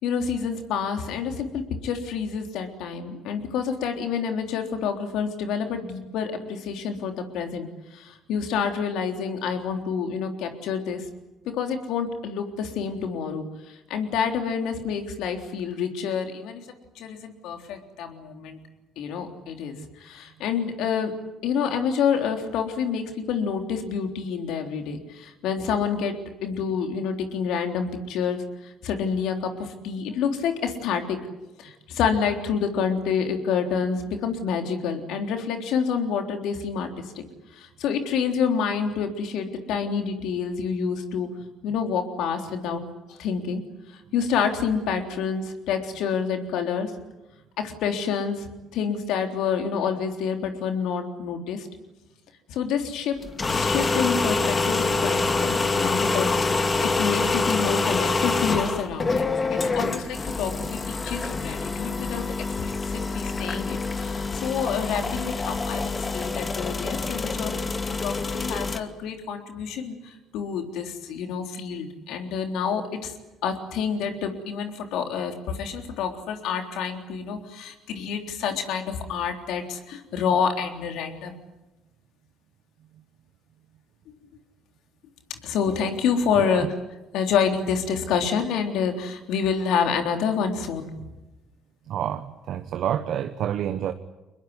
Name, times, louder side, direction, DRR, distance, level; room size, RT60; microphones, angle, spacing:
voice 1, 0.0-11.0 11.6-16.6 17.0-18.6 19.0-21.1 21.4-26.1 26.4-31.2 31.6-36.9 37.2-37.3 37.5-41.3 41.6-42.8 43.1-43.6 43.9-46.9 47.6-51.7 52.5-53.2 53.4-59.3 59.6-62.3 62.6-67.7 68.0-73.1 73.4-81.4 85.3-86.7 87.1-90.9, left 6 dB, 70° left, 5 dB, 3.6 m, -28 dB
sound 1, 53.2-68.8, left 3 dB, 30° left, 2.3 m, -26 dB
voice 2, 86.4-86.7 91.9-93.9, right 10 dB, 65° right, 9 dB, 1.3 m, -28 dB
24.5 x 21.5 x 9.7 m, 1.0 s
hypercardioid pair, 65°, 0 cm